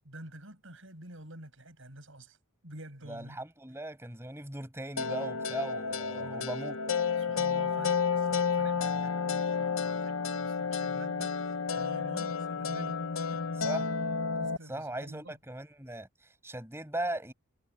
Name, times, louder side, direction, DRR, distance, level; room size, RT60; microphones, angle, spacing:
voice 1, 0.0-2.4 2.6-3.4 6.1-6.7 7.2-13.4 14.4-15.4, right 1 dB, 60° right, 6.7 m, -49 dB
voice 2, 3.1-6.9 13.6-13.9 14.7-17.3, right 1 dB, 10° right, 6.4 m, -38 dB
sound 1, 5.0-14.6, left 5 dB, 70° left, 1.0 m, -31 dB
head